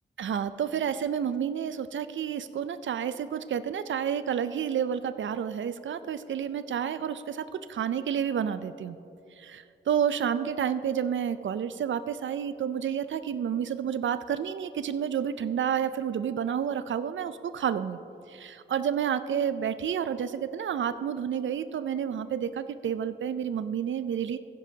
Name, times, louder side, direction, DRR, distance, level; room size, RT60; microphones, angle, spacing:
voice 1, 0.2-9.0 9.4-18.0 18.3-24.4, right 8 dB, 75° right, 13 dB, 0.4 m, -30 dB
15.5 x 10.0 x 2.8 m, 2.7 s
wide cardioid pair, 80°, 20 cm